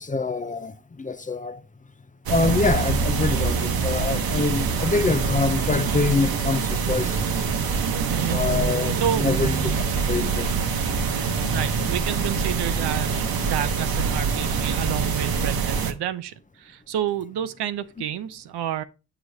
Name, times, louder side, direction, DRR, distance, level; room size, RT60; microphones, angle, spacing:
voice 1, 0.0-1.6 2.3-7.5 8.3-9.7 10.0-11.1, left 3 dB, 20° left, 0.6 m, -26 dB
sound 1, 2.3-15.9, right 5 dB, 65° right, 1.0 m, -24 dB
voice 2, 8.9-9.3 11.5-18.8, right 10 dB, 90° right, 0.7 m, -30 dB
7.7 x 5.0 x 2.7 m
cardioid pair, 80°, 38 cm